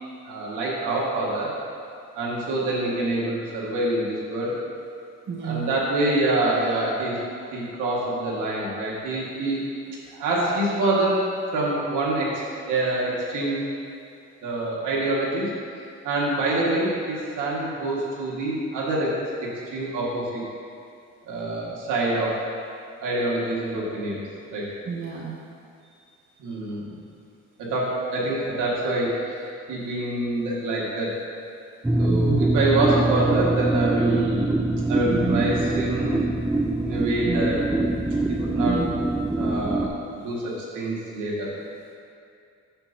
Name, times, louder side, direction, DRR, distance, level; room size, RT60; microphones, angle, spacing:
voice 1, 0.2-1.5 2.2-4.5 5.4-7.2 7.5-9.6 10.1-11.2 11.5-12.3 12.7-13.6 14.4-15.5 16.0-19.1 19.7-20.4 21.3-22.4 23.0-24.2 24.5-24.6 26.4-27.0 27.6-29.4 29.7-31.1 32.0-34.5 34.9-36.2 36.8-37.6 38.4-38.8 39.4-41.5, right 2 dB, 85° right, -5 dB, 1.8 m, -26 dB
voice 2, 5.3-5.7 24.9-25.3 32.1-32.4 35.1-35.5 37.2-37.5 38.7-38.8, right 6 dB, 40° right, -3 dB, 0.8 m, -29 dB
sound 1, 31.8-39.9, right 2 dB, 5° right, 0.4 m, -24 dB
8.8 x 7.0 x 2.7 m, 2.5 s
cardioid pair, 90°, 30 cm